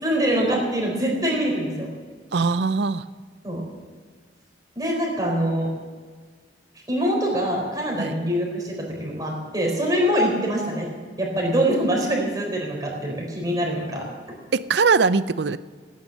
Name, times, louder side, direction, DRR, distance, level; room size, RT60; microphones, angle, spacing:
voice 1, 0.0-1.9 3.4-3.6 4.8-5.7 6.9-14.1, equal, 20° right, -1 dB, 4.2 m, -24 dB
voice 2, 2.3-3.0 8.0-8.1 14.5-15.6, right 4 dB, 65° right, 15 dB, 0.5 m, -21 dB
17.5 x 9.5 x 7.7 m, 1.5 s
head